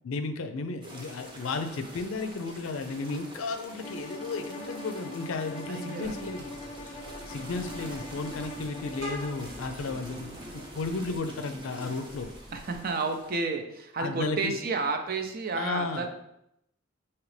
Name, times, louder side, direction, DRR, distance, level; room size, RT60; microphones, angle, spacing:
voice 1, 0.0-6.5 6.8-7.0 7.3-12.3 14.0-14.5 15.6-16.1, left 3 dB, 85° left, 8 dB, 0.5 m, -34 dB
sound 1, 0.8-13.3, right 1 dB, 25° right, 0.8 m, -46 dB
Bowed string instrument, 3.8-9.4, left 1 dB, 30° left, 0.3 m, -42 dB
voice 2, 5.7-6.1 7.4-7.8 10.1-10.7 12.5-16.1, right 4 dB, 50° right, 5 dB, 0.5 m, -32 dB
Vehicle horn car horn honking, 6.0-11.2, left 1 dB, 85° right, 1.1 m, -46 dB
5.0 x 2.9 x 3.2 m, 0.80 s
head